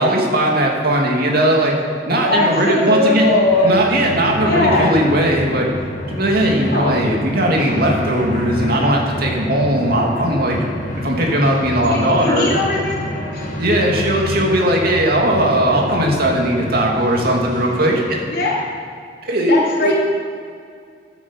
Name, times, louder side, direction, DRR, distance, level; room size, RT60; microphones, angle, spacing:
voice 1, 0.0-1.7 2.1-3.3 3.6-5.7 6.1-10.6 11.0-12.5 13.6-18.2 19.2-19.9, right 1 dB, 60° right, -1 dB, 2.7 m, -18 dB
voice 2, 2.2-3.7 4.4-4.9 6.7-7.1 11.8-12.9 13.3-13.5 15.7-15.8 18.3-18.5 19.5-19.9, left 2 dB, 65° left, -5 dB, 4.5 m, -19 dB
sound 1, 3.0-18.7, left 1 dB, 50° left, 1.9 m, -28 dB
12.0 x 10.0 x 7.4 m, 2.2 s
head